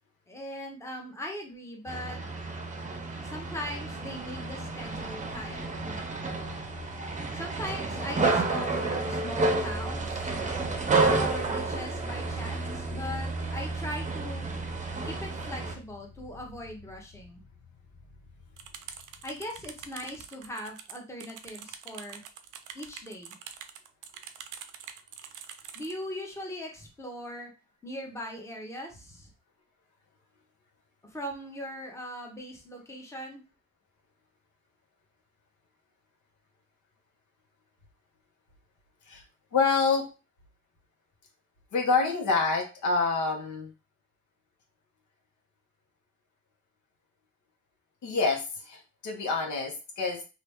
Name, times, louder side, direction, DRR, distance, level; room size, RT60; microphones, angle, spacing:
voice 1, 0.3-2.2 3.2-5.6 7.3-10.4 11.1-14.4 15.0-17.4 19.2-22.2 22.7-23.4 25.7-27.5 27.8-29.3 31.0-33.4, equal, 10° left, 0 dB, 0.9 m, -40 dB
sound 1, 1.9-15.7, right 3 dB, 25° right, 0.7 m, -30 dB
sound 2, 3.3-20.4, left 4 dB, 25° left, 0.6 m, -49 dB
sound 3, 18.6-25.9, right 8 dB, 80° right, 0.5 m, -45 dB
voice 2, 39.5-40.1 41.7-43.7 48.0-50.2, left 4 dB, 75° left, 1 dB, 1.1 m, -27 dB
2.8 x 2.6 x 3.4 m, 0.30 s
cardioid pair, 90°, 30 cm